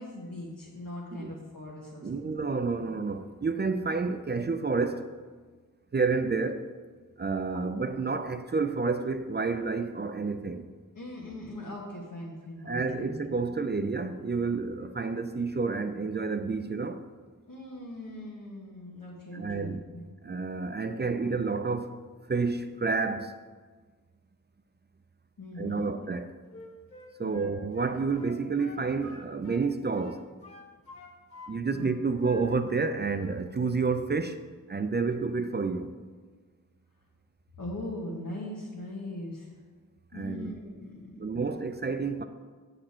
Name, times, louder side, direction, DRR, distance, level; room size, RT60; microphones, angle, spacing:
voice 1, 0.0-2.5 7.5-7.6 10.9-13.2 17.5-20.0 25.4-25.9 27.2-27.5 31.7-31.8 37.6-39.5 40.1-41.3, left 1 dB, 65° left, 1.4 m, -40 dB
voice 2, 2.0-5.1 5.9-6.7 7.2-10.6 12.6-17.0 19.3-19.8 20.2-22.0 22.3-23.3 25.6-26.3 27.2-30.2 31.5-34.4 34.7-35.9 40.1-40.5 41.2-42.2, right 4 dB, 30° right, 0.4 m, -29 dB
Wind instrument woodwind instrument, 26.5-29.7 29.9-31.5 31.8-32.9 33.1-33.4, right 1 dB, 40° left, 2.2 m, -46 dB
7.7 x 6.7 x 4.3 m
wide cardioid pair, 85°, 34 cm